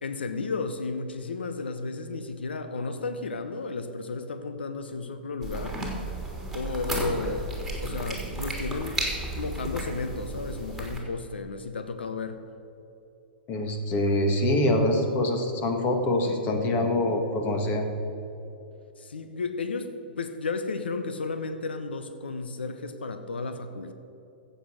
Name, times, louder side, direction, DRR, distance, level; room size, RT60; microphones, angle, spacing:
voice 1, 0.0-5.8 6.5-7.5 7.8-9.0 9.4-12.4 19.0-23.9, left 3 dB, 80° left, 8 dB, 1.0 m, -33 dB
sound 1, 5.4-11.0, right 1 dB, ahead, 3.4 m, -33 dB
voice 2, 13.5-17.9, left 1 dB, 30° left, 4 dB, 1.8 m, -25 dB
15.0 x 8.0 x 6.4 m, 2.9 s
hypercardioid pair, 115°, 6 cm